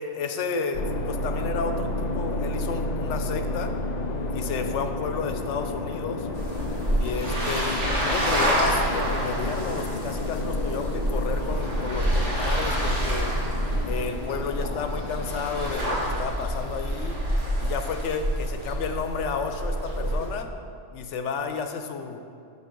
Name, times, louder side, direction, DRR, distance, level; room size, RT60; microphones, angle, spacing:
voice 1, 0.0-3.7 4.3-6.3 6.9-13.4 13.8-17.2 17.6-20.5 20.9-22.2, left 5 dB, 75° left, 7 dB, 1.0 m, -32 dB
sound 1, 0.7-17.2, left 2 dB, 50° left, 0.5 m, -32 dB
sound 2, 6.3-20.3, right 1 dB, 65° right, 2.0 m, -27 dB
11.5 x 3.9 x 5.2 m, 2.5 s
omnidirectional pair, 1.3 m